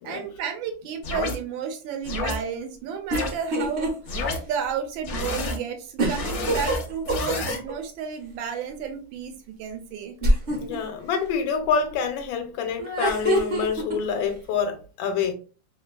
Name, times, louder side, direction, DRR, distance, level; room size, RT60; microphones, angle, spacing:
voice 1, 0.0-10.1, right 7 dB, 80° right, 1.4 m, -32 dB
sound 1, 1.0-1.4 2.0-2.4 3.1-3.3 4.0-4.4 5.0-5.6 6.0-7.6, left 2 dB, 65° left, 0.7 m, -29 dB
sound 2, 3.1-3.9 4.3-4.4 6.0-7.7 10.2-10.8 12.8-14.0, right 1 dB, 45° right, 0.7 m, -24 dB
voice 2, 10.5-15.3, left 6 dB, 90° left, 1.4 m, -27 dB
3.4 x 2.5 x 2.2 m
omnidirectional pair, 2.1 m